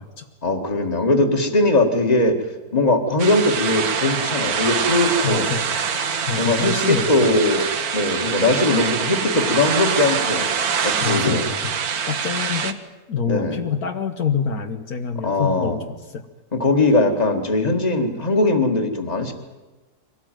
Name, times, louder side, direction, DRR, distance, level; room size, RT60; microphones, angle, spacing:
voice 1, 0.4-2.4 2.7-5.5 6.4-7.6 7.9-10.5 10.8-11.4 13.3-13.6 15.2-15.8 16.5-19.3, left 2 dB, 25° left, 4 dB, 2.1 m, -20 dB
sound 1, 3.2-12.7, right 6 dB, 70° right, 1.6 m, -24 dB
voice 2, 5.2-5.7 6.3-7.4 11.0-11.8 12.1-12.8 13.1-16.2, left 6 dB, 70° left, 6 dB, 1.6 m, -26 dB
23.5 x 18.0 x 9.2 m, 1.2 s
omnidirectional pair, 1.7 m